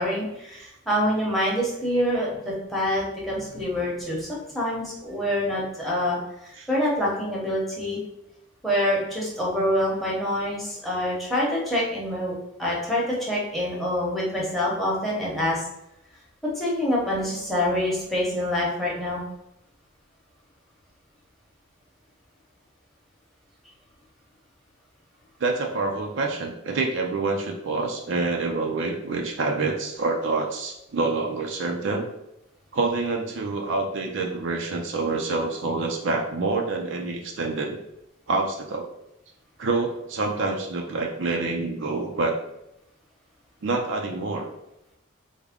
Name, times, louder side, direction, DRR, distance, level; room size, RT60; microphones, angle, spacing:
voice 1, 0.0-6.2 6.4-8.0 8.6-15.7 16.6-19.2, left 1 dB, ahead, -5 dB, 0.8 m, -26 dB
voice 2, 25.4-32.1 32.7-37.8 38.3-38.9 39.6-42.4 43.6-44.5, right 3 dB, 60° right, 2 dB, 0.4 m, -27 dB
3.5 x 2.1 x 3.5 m, 0.84 s
head